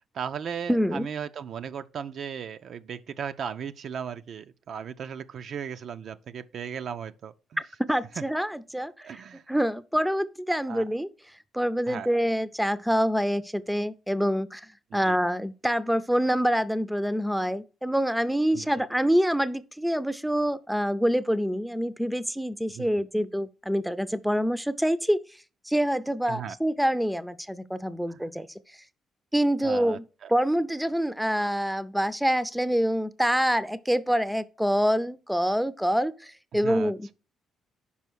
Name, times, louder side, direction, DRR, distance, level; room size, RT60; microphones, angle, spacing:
voice 1, 0.0-7.6 8.2-8.3 9.0-9.4 10.7-10.8 11.9-12.1 14.9-15.2 18.5-18.9 22.7-22.9 26.3-26.6 28.1-28.2 29.6-30.3 36.6-37.1, right 7 dB, 60° right, 0.4 m, -36 dB
voice 2, 0.7-1.1 7.9-8.9 9.5-11.1 11.5-14.7 14.9-25.2 25.7-28.5 29.3-30.0 30.3-37.1, equal, ahead, 0.5 m, -26 dB
5.6 x 4.9 x 6.2 m
cardioid pair, 90°, 0 cm